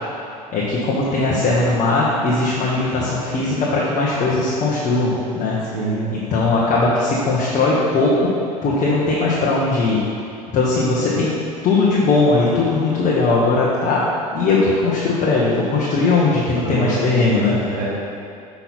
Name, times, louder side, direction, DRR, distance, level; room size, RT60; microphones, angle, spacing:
voice 1, 0.5-5.6 6.1-8.3 8.6-10.0 10.5-11.3 11.6-14.0 14.3-17.7, left 3 dB, 40° left, -6 dB, 1.3 m, -19 dB
voice 2, 5.7-6.0 16.6-17.9, right 2 dB, 70° right, -5 dB, 1.5 m, -25 dB
5.9 x 5.7 x 4.2 m, 2.5 s
figure-of-eight pair, 70°, 19 cm